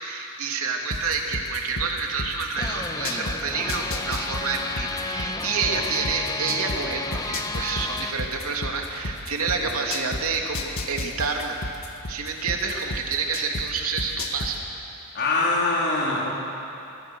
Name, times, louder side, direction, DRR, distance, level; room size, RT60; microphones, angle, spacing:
voice 1, 0.0-11.6 12.1-14.7, right 4 dB, 80° right, 1 dB, 2.9 m, -28 dB
sound 1, 0.9-3.4 3.7-6.8 7.1-10.2 10.5-13.6 14.0-14.5, left 2 dB, 70° left, 1.8 m, -31 dB
sound 2, 2.6-8.1, left 3 dB, 15° left, 1.0 m, -32 dB
voice 2, 15.1-16.4, left 2 dB, 55° left, -4 dB, 3.8 m, -24 dB
25.0 x 24.5 x 6.5 m, 2.9 s
head